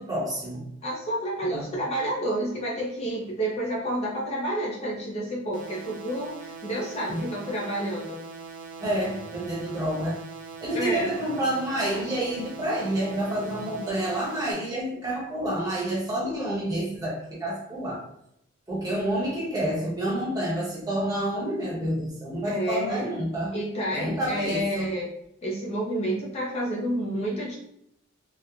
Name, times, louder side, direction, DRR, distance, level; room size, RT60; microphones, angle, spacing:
voice 1, 0.0-0.7 1.4-1.8 7.1-7.2 8.8-10.2 10.6-18.0 18.7-23.6 23.9-24.9, right 1 dB, 20° right, -6 dB, 0.8 m, -29 dB
voice 2, 0.8-8.2 10.7-11.1 22.4-23.1 23.5-25.1 25.4-27.6, right 1 dB, 30° left, -3 dB, 0.5 m, -29 dB
sound 1, 5.5-14.5, right 5 dB, 40° right, 0.5 m, -42 dB
2.9 x 2.1 x 2.4 m, 0.73 s
head